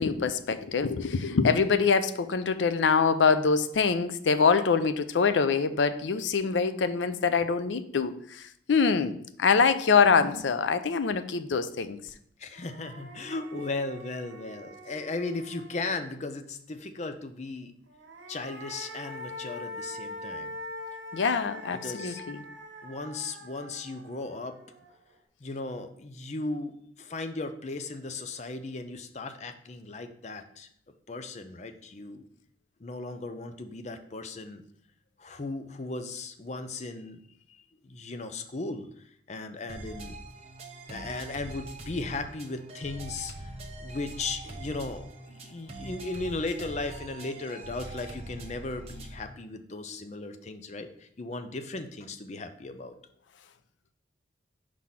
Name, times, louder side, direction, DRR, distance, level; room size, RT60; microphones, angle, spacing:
voice 1, 0.0-12.0 21.1-22.5, left 5 dB, 90° left, 0.5 m, -25 dB
sound 1, 12.1-12.2 12.5-16.2 17.8-25.1, left 1 dB, 90° right, 1.1 m, -43 dB
voice 2, 12.4-17.7 18.3-20.6 21.7-22.2 22.8-24.6 25.4-30.7 31.1-32.2 32.8-34.6 35.2-37.2 37.8-38.9 39.3-40.2 40.9-43.5 43.8-52.9, left 3 dB, 40° left, 0.5 m, -36 dB
sound 2, 39.7-49.3, right 2 dB, 35° right, 0.9 m, -43 dB
4.9 x 4.0 x 5.7 m
head